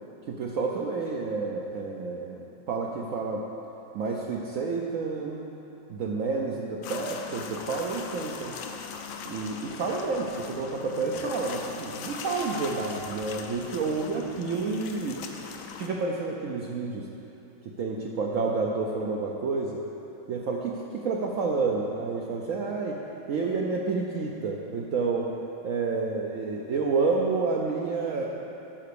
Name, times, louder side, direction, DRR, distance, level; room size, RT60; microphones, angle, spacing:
voice 1, 0.3-3.5 3.9-5.4 5.9-8.6 9.2-15.2 15.8-17.1 17.6-19.8 20.3-23.0 23.3-25.3 25.6-28.3, right 4 dB, 75° right, -2 dB, 0.7 m, -29 dB
sound 1, 6.8-15.9, left 6 dB, 80° left, 1.4 m, -39 dB
11.5 x 4.1 x 6.8 m, 2.9 s
omnidirectional pair, 2.1 m